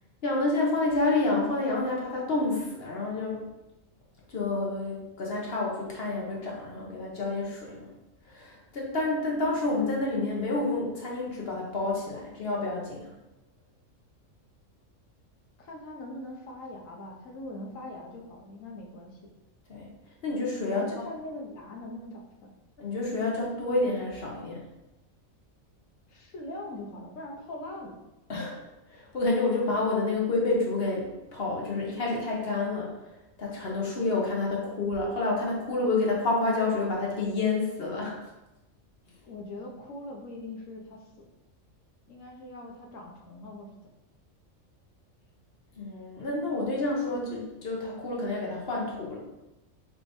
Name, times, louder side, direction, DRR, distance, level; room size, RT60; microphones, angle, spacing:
voice 1, 0.2-3.4 4.3-7.9 8.3-13.1 19.7-19.9 20.2-21.0 22.8-24.6 28.3-33.1 33.4-38.3 45.8-49.2, left 2 dB, 50° left, -2 dB, 1.0 m, -29 dB
voice 2, 9.0-9.4 15.6-19.2 20.7-22.5 26.1-28.0 39.2-41.3 42.1-43.7, left 1 dB, 75° left, 0 dB, 1.2 m, -41 dB
4.9 x 3.5 x 2.6 m, 0.98 s
omnidirectional pair, 1.4 m